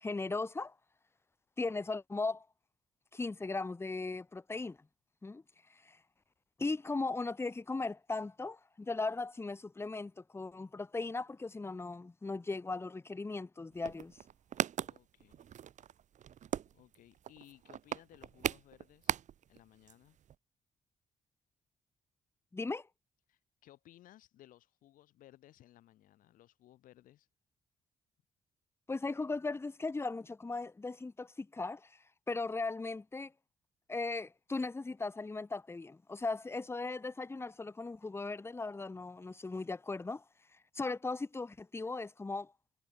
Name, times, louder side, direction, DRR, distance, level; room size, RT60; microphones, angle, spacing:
voice 1, 0.0-0.7 1.6-2.5 3.1-4.8 5.2-5.4 5.8-6.0 6.6-14.2 22.5-22.9 28.9-32.0 32.3-33.3 33.9-40.2 40.7-42.5, left 3 dB, 20° left, 0.7 m, -38 dB
sound 1, 13.7-19.6 19.9-20.0 20.2-20.4, right 9 dB, 60° right, 1.1 m, -38 dB
voice 2, 14.8-15.4 16.4-19.2 19.5-20.2 23.3-27.3, left 14 dB, 85° left, 7.9 m, -60 dB
cardioid pair, 70°, 14 cm